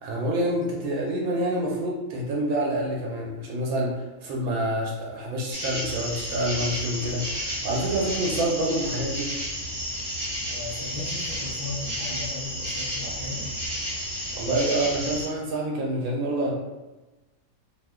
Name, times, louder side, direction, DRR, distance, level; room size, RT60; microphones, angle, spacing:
voice 1, 0.0-9.3 14.3-16.5, right 1 dB, 90° right, -2 dB, 1.1 m, -27 dB
sound 1, 5.5-15.3, equal, 40° right, 1.3 m, -32 dB
voice 2, 10.5-13.5, left 2 dB, 20° right, -7 dB, 0.9 m, -36 dB
2.8 x 2.1 x 3.5 m, 1.1 s
omnidirectional pair, 1.5 m